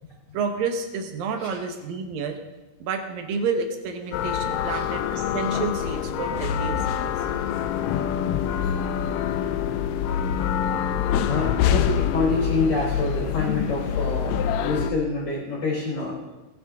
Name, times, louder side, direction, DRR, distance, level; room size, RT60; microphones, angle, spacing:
voice 1, 0.3-2.4 2.8-7.1, right 5 dB, 70° right, 5 dB, 2.9 m, -30 dB
sound 1, 4.1-14.9, left 9 dB, 80° left, 1.9 m, -25 dB
voice 2, 11.2-16.2, left 3 dB, 40° left, -4 dB, 4.7 m, -27 dB
19.5 x 10.5 x 3.7 m, 1.1 s
omnidirectional pair, 4.3 m